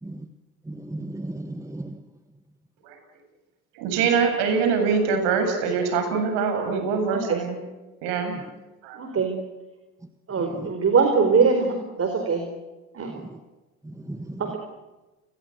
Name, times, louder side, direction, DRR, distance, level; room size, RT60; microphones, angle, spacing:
voice 1, 0.7-2.0 10.4-10.7 13.2-13.4 13.8-14.6, right 1 dB, 5° right, 1.5 m, -36 dB
voice 2, 3.7-7.6 8.0-8.4 8.8-9.0, right 5 dB, 70° right, 8.0 m, -24 dB
voice 3, 8.9-9.3 10.3-12.4 12.9-13.2 14.4-14.6, right 5 dB, 35° right, 4.5 m, -22 dB
29.5 x 21.5 x 8.2 m
hypercardioid pair, 80°, 42 cm